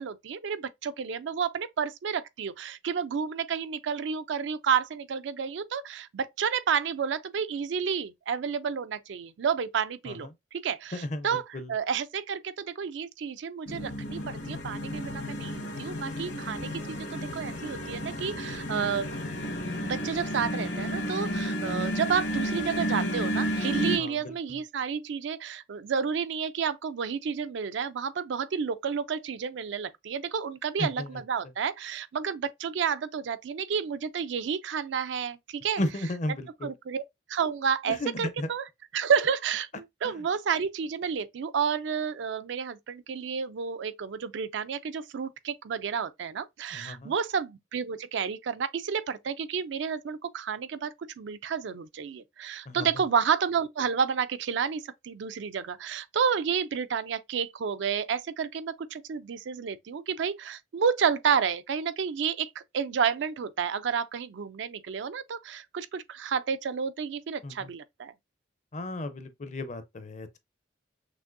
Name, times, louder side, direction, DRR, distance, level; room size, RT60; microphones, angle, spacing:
voice 1, 0.0-19.1 19.8-35.8 36.6-37.0 37.3-38.6 38.9-68.1, right 6 dB, 70° right, 0.4 m, -30 dB
voice 2, 10.9-11.7 24.0-24.6 30.8-31.2 35.8-36.7 37.9-38.5 40.0-40.2 46.7-47.1 52.7-53.0 67.4-67.7 68.7-70.4, left 1 dB, 40° left, 0.5 m, -35 dB
sound 1, 13.7-24.0, equal, 65° left, 1.1 m, -32 dB
6.1 x 2.6 x 2.5 m
head